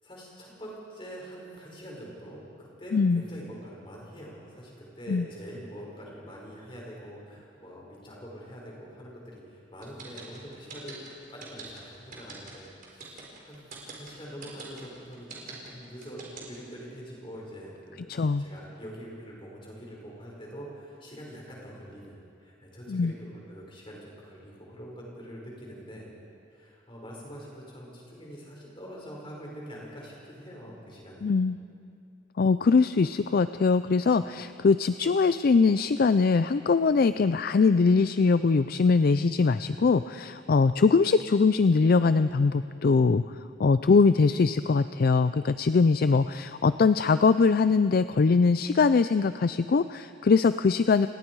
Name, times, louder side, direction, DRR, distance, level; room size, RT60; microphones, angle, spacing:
voice 1, 0.0-26.1 26.5-31.3, equal, 25° left, -3 dB, 5.2 m, -44 dB
voice 2, 2.9-3.2 5.1-5.3 18.1-18.4 22.9-23.1 31.2-31.6 32.4-43.2 43.6-51.1, left 4 dB, 50° left, 12 dB, 0.4 m, -22 dB
sound 1, 9.8-16.7, right 4 dB, 45° right, 4.4 m, -43 dB
29.5 x 18.5 x 4.7 m, 2.4 s
head